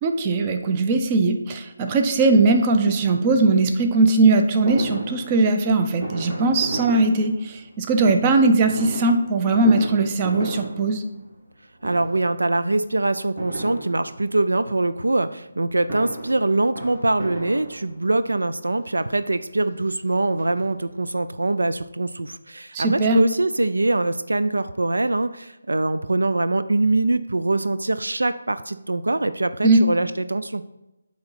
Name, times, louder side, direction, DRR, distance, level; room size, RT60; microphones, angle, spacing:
voice 1, 0.0-11.0 22.7-23.2 29.6-29.8, right 3 dB, 25° right, 6 dB, 0.6 m, -19 dB
Fireworks, 4.7-7.8 8.6-11.5 11.8-12.4 13.4-14.5 15.6-18.3 19.0-19.1 19.4-19.5 19.8-21.1 21.4-21.5 21.7-21.8, right 1 dB, 40° right, 2.4 m, -34 dB
voice 2, 11.8-30.6, right 2 dB, 75° right, 12 dB, 0.3 m, -23 dB
8.5 x 3.0 x 5.6 m, 0.96 s
figure-of-eight pair, 155°, 0 cm